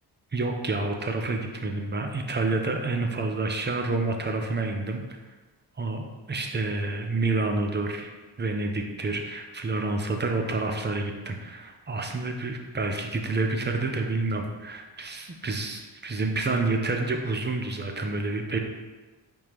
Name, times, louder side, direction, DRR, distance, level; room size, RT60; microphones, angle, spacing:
voice 1, 0.3-5.2 5.8-8.1 8.4-18.6, right 3 dB, 25° right, 3 dB, 0.7 m, -28 dB
4.7 x 3.6 x 3.0 m, 1.2 s
cardioid pair, 65°, 43 cm